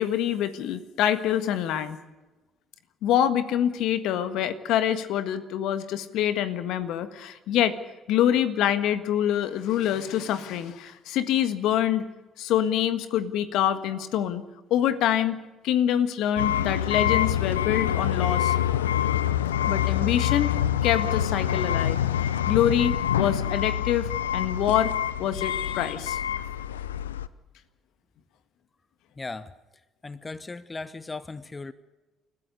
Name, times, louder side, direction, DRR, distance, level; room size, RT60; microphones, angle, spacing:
voice 1, 0.0-2.0 3.0-7.8 8.1-12.0 12.4-14.4 14.7-18.6 19.7-20.5 20.8-22.0 22.5-24.9 25.2-26.2, left 10 dB, 65° left, 11 dB, 1.6 m, -25 dB
sound 1, 16.4-27.3, left 10 dB, 85° left, 0.6 m, -26 dB
voice 2, 29.2-29.5 30.0-31.7, left 3 dB, 25° left, 15 dB, 1.2 m, -37 dB
29.5 x 15.0 x 6.8 m, 1.1 s
hypercardioid pair, 50°, 0 cm